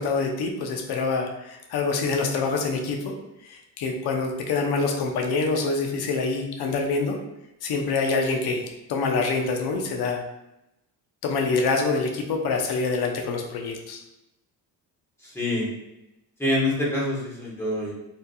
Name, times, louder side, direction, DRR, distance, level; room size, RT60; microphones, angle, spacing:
voice 1, 0.0-3.1 3.4-7.2 7.6-10.2 11.2-14.0, left 4 dB, 65° left, 2 dB, 0.7 m, -26 dB
voice 2, 15.2-15.7 16.4-17.9, left 1 dB, 5° left, -7 dB, 1.3 m, -26 dB
4.5 x 3.4 x 2.3 m, 0.90 s
cardioid pair, 160°, 40 cm